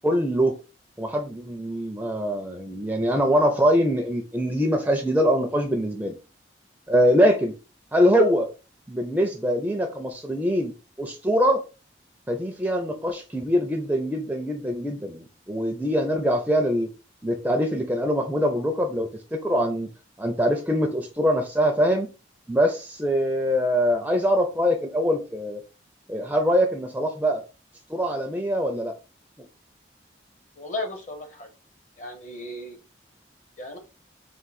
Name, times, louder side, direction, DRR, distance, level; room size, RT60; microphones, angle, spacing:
voice 1, 0.0-0.6 1.0-6.1 6.9-7.5 7.9-8.5 8.9-10.7 11.0-11.6 12.3-16.9 17.2-19.9 20.2-22.1 22.5-25.6 26.1-27.4 27.9-28.9, equal, 10° right, 4 dB, 0.4 m, -23 dB
voice 2, 30.6-31.5 32.0-32.8 33.6-33.8, left 2 dB, 40° left, 5 dB, 0.8 m, -35 dB
3.7 x 2.5 x 4.0 m, 0.32 s
head